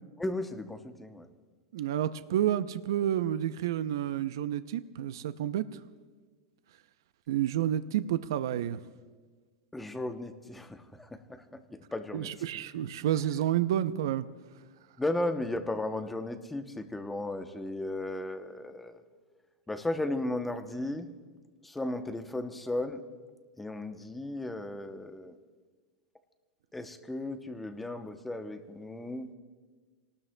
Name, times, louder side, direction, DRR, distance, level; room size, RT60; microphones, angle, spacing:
voice 1, 0.2-1.3 9.7-12.3 15.0-19.0 19.7-21.1 21.6-23.0 23.6-25.3 26.7-29.3, left 2 dB, 5° left, 7 dB, 0.7 m, -35 dB
voice 2, 1.7-5.8 7.3-8.8 12.1-14.3, right 11 dB, 80° right, 13 dB, 0.5 m, -30 dB
27.5 x 19.0 x 2.2 m, 1.4 s
supercardioid pair, 165°, 2 cm